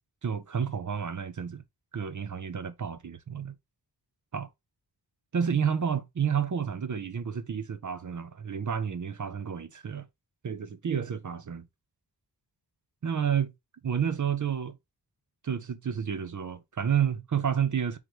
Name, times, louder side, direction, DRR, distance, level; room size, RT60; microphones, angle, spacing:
voice 1, 0.2-1.6 1.9-3.6 4.3-4.5 5.3-10.1 10.4-11.7 13.0-13.5 13.8-14.8 15.4-18.0, right 7 dB, 45° right, 0.6 m, -30 dB
3.8 x 3.1 x 4.6 m
wide cardioid pair, 90°, 41 cm